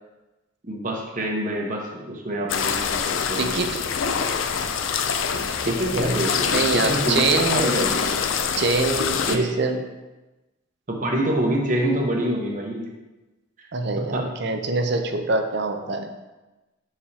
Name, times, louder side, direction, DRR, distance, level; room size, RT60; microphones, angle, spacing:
voice 1, 0.6-3.6 5.6-8.0 9.3-9.6 10.9-12.9 13.6-13.7 14.1-14.3, right 1 dB, 40° right, -1 dB, 1.0 m, -26 dB
sound 1, 2.5-9.4, left 6 dB, 75° left, 0.4 m, -25 dB
voice 2, 3.4-3.8 5.6-6.2 6.5-7.7 8.6-9.8 13.7-16.1, right 3 dB, 55° right, 6 dB, 0.6 m, -24 dB
7.1 x 4.8 x 2.8 m, 1.1 s
head